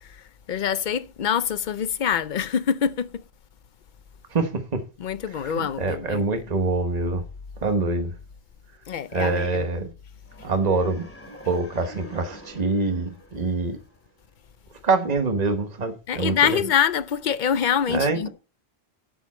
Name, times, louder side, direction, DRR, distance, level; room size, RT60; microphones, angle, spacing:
voice 1, 0.0-3.2 5.0-6.4 8.9-9.7 16.1-18.3, left 8 dB, 55° left, 0.7 m, -25 dB
voice 2, 4.3-4.8 5.5-7.2 7.6-8.1 9.1-9.9 10.4-13.8 14.8-16.6 17.9-18.3, right 3 dB, 40° right, 1.3 m, -25 dB
sound 1, 10.2-14.3, left 1 dB, 10° left, 2.3 m, -46 dB
11.0 x 7.1 x 4.3 m
omnidirectional pair, 1.1 m